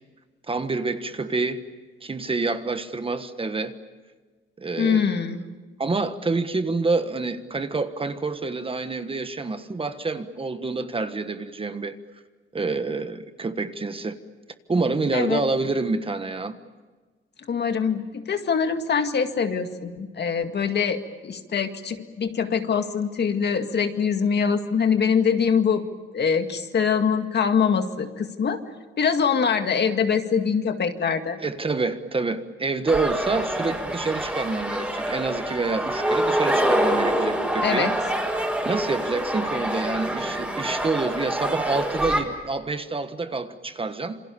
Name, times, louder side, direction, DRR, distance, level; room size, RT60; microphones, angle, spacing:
voice 1, 0.5-1.6 2.0-3.7 4.6-5.2 5.8-12.0 12.5-14.2 14.7-16.6 31.4-38.0 38.6-44.2, right 3 dB, 25° right, 9 dB, 1.4 m, -27 dB
voice 2, 4.8-5.4 15.1-15.4 17.5-25.8 26.1-28.6 29.0-31.4 37.6-37.9, left 6 dB, 55° left, 7 dB, 2.1 m, -23 dB
sound 1, 32.9-42.2, right 1 dB, 5° right, 5.3 m, -26 dB
27.5 x 26.0 x 7.0 m, 1.3 s
cardioid pair, 120°, 21 cm